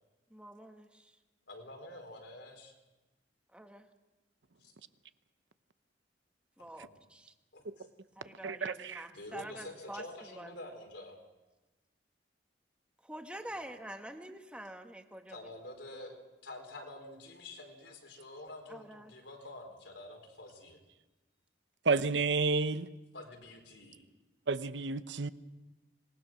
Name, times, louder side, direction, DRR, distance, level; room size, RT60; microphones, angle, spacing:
voice 1, 0.3-1.2 3.5-3.9 6.6-7.3 8.1-10.5 13.0-15.5 18.7-19.1, right 1 dB, 5° right, 1.5 m, -47 dB
voice 2, 1.5-2.7 4.6-4.7 6.6-6.9 7.5-7.8 9.1-11.2 13.4-13.5 15.3-16.2 16.4-20.8 23.1-24.0, left 1 dB, 80° left, 4.5 m, -48 dB
voice 3, 8.4-9.0 21.9-22.9 24.5-25.3, right 4 dB, 80° right, 0.9 m, -30 dB
26.0 x 20.0 x 6.2 m
head